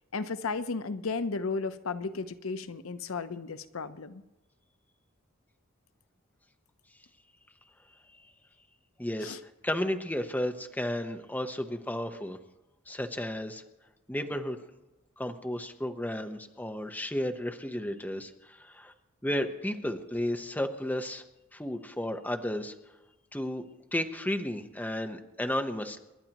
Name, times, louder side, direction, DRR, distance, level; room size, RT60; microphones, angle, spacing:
voice 1, 0.1-4.2 9.2-9.4, left 4 dB, 80° left, 11 dB, 0.7 m, -34 dB
voice 2, 9.0-9.4 9.6-12.4 12.9-13.6 14.1-14.6 15.2-18.9 19.2-21.2 21.5-22.7 23.3-23.6 23.9-26.0, left 1 dB, 10° left, 5 dB, 1.0 m, -33 dB
29.0 x 11.5 x 3.0 m, 1.0 s
head